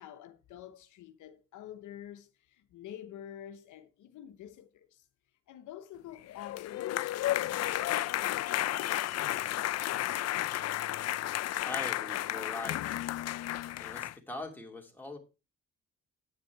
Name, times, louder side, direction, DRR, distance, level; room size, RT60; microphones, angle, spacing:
voice 1, 0.0-5.0 5.5-9.1 12.3-12.5 13.3-13.4, left 11 dB, 80° left, 1.0 m, -48 dB
sound 1, 6.3-14.1, left 14 dB, 55° left, 0.5 m, -32 dB
voice 2, 11.6-12.8 13.8-15.2, left 2 dB, 5° left, 2.6 m, -41 dB
8.9 x 6.8 x 4.6 m
cardioid pair, 90°, 30 cm